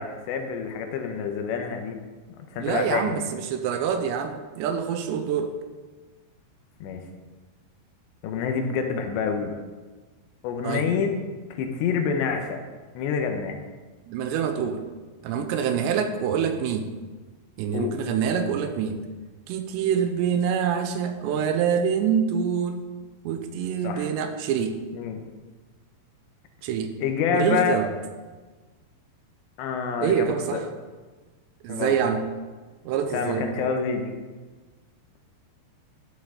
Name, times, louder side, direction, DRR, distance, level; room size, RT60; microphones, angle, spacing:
voice 1, 0.0-2.0 2.5-3.3 6.8-7.1 8.2-9.6 10.4-11.2 11.5-12.6 12.9-13.6 17.7-18.0 23.8-24.1 24.9-25.2 27.0-27.8 29.6-30.6 31.7-32.0 33.1-34.1, left 6 dB, 80° left, 5 dB, 3.1 m, -27 dB
voice 2, 2.6-5.5 10.6-10.9 14.1-14.8 15.2-16.9 17.6-19.0 19.5-22.9 23.2-24.8 26.6-26.9 27.3-27.9 30.0-30.6 31.6-32.3 32.9-33.5, right 7 dB, 85° right, 7 dB, 2.7 m, -26 dB
13.0 x 7.0 x 3.8 m, 1.3 s
omnidirectional pair, 5.3 m